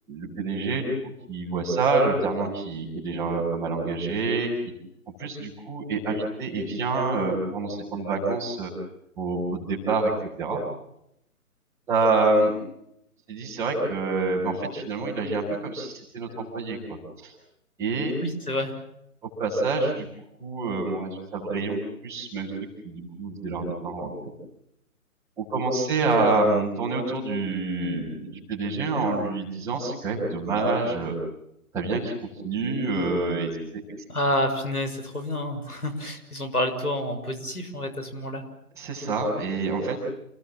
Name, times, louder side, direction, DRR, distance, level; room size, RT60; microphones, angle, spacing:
voice 1, 0.1-0.9 1.3-4.5 5.2-8.7 9.2-10.1 10.4-10.6 11.9-12.5 13.3-17.3 17.8-18.1 19.4-20.0 20.4-22.5 22.8-24.1 25.4-31.1 31.7-32.1 32.4-33.8 38.8-40.0, right 3 dB, 5° right, -6 dB, 6.5 m, -27 dB
voice 2, 18.2-18.7 34.1-38.4, left 1 dB, 80° left, 6 dB, 6.8 m, -28 dB
28.5 x 21.0 x 7.6 m, 0.77 s
figure-of-eight pair, 145°, 44 cm